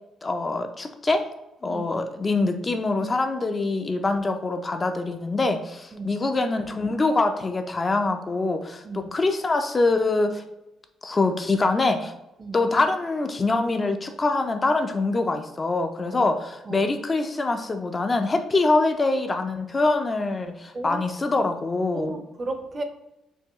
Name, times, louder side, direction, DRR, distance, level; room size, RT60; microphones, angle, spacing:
voice 1, 0.2-1.2 1.6-10.4 11.0-12.1 12.5-22.2, left 3 dB, 30° left, 6 dB, 0.4 m, -24 dB
voice 2, 21.9-22.8, right 2 dB, 35° right, 6 dB, 0.6 m, -34 dB
4.5 x 2.7 x 3.0 m, 0.93 s
cardioid pair, 90°, 0 cm